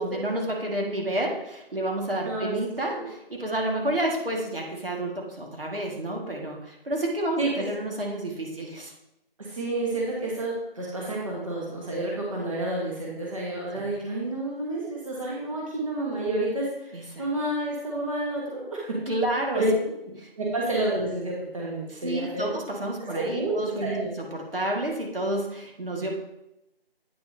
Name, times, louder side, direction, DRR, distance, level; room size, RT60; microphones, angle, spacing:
voice 1, 0.0-8.9 13.9-14.0 16.9-17.2 19.1-19.7 20.2-20.3 21.9-26.1, right 1 dB, 65° right, -1 dB, 1.9 m, -30 dB
voice 2, 2.2-2.6 2.9-3.1 7.4-7.5 9.4-18.9 19.5-19.7 20.4-22.5 23.1-23.5 23.8-24.1, right 2 dB, 35° right, -4 dB, 1.5 m, -30 dB
8.9 x 6.6 x 2.8 m, 0.87 s
figure-of-eight pair, 170°, 30 cm